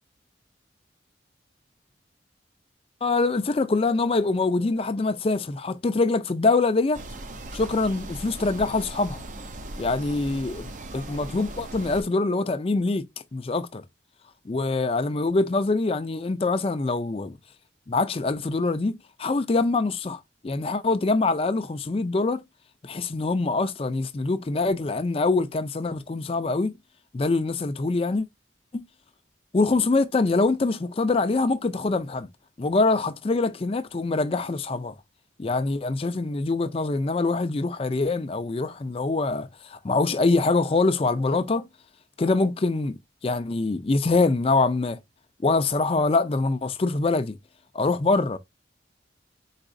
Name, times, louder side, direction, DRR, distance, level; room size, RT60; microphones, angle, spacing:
voice 1, 3.0-7.0 7.5-9.2 9.8-13.1 13.3-13.8 14.5-17.3 17.9-22.4 22.8-26.7 27.1-28.3 28.7-28.8 29.5-32.3 32.6-34.9 35.4-41.7 42.2-45.0 45.4-47.4 47.7-48.4, left 3 dB, 30° left, 0.4 m, -24 dB
sound 1, 6.9-12.0, right 1 dB, 40° right, 0.6 m, -38 dB
4.8 x 4.1 x 2.6 m
head